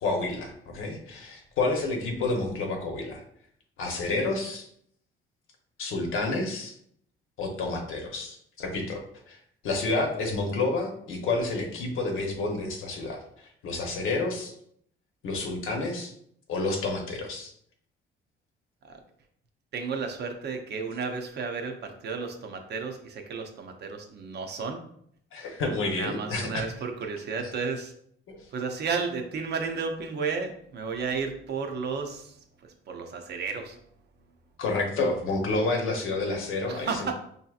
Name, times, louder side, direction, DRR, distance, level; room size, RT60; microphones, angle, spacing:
voice 1, 0.0-3.2 3.8-4.7 5.8-6.7 7.4-14.5 15.2-16.1 16.5-17.5 25.3-26.6 27.4-27.5 28.3-28.4 34.6-37.1, left 3 dB, 80° left, 2 dB, 0.9 m, -29 dB
voice 2, 19.7-24.8 25.9-27.9 28.5-32.3 32.9-33.8 36.7-37.1, right 5 dB, 55° right, 5 dB, 0.6 m, -32 dB
4.9 x 2.7 x 2.4 m, 0.67 s
cardioid pair, 125°, 21 cm